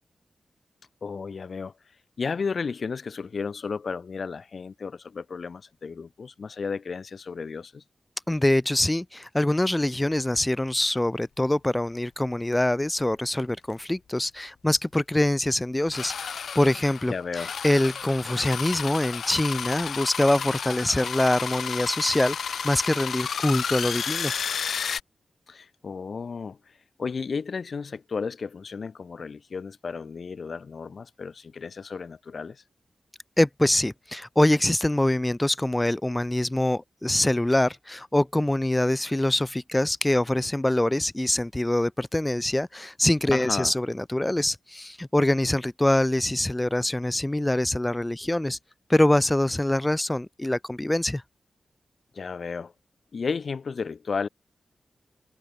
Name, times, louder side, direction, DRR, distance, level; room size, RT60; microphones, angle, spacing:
voice 1, 1.0-1.7 2.2-7.8 17.1-17.5 25.5-32.6 43.3-43.8 52.1-52.7 53.1-54.3, left 5 dB, 65° left, 4.7 m, -33 dB
voice 2, 8.3-24.3 33.4-48.6 48.9-51.2, left 1 dB, 15° left, 3.7 m, -24 dB
sound 1, 13.7-13.8 14.2-14.3 15.9-25.0, left 7 dB, 80° left, 1.3 m, -32 dB
cardioid pair, 50°, 0 cm